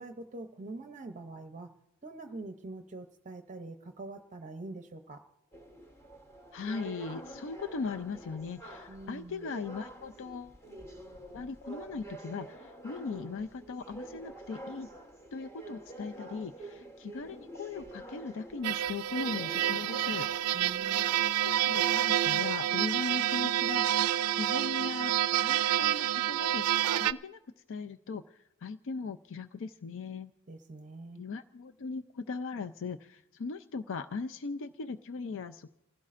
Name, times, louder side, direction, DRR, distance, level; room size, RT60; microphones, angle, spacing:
voice 1, 0.0-1.7 2.0-5.2 8.9-9.5 20.5-21.5 30.5-31.2, right 2 dB, 35° right, 6 dB, 0.6 m, -44 dB
sound 1, 5.5-22.3, right 1 dB, 10° left, 1.0 m, -48 dB
voice 2, 6.5-10.6 11.3-14.9 15.3-20.3 21.4-27.4 27.7-30.3 31.2-35.7, left 4 dB, 60° left, 9 dB, 0.5 m, -39 dB
sound 2, 18.6-27.1, right 12 dB, 90° right, 0.4 m, -28 dB
29.0 x 16.0 x 2.5 m, 0.95 s
head